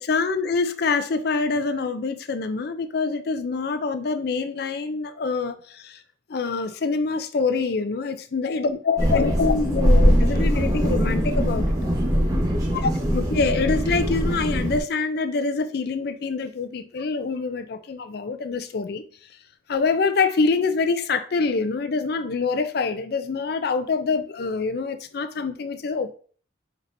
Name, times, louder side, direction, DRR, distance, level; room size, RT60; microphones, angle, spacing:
voice 1, 0.1-6.0 6.3-11.7 12.7-19.0 19.7-26.1, left 4 dB, 55° left, 0.4 m, -25 dB
sound 1, 9.0-14.8, equal, 20° right, 0.9 m, -21 dB
4.7 x 3.9 x 2.6 m
head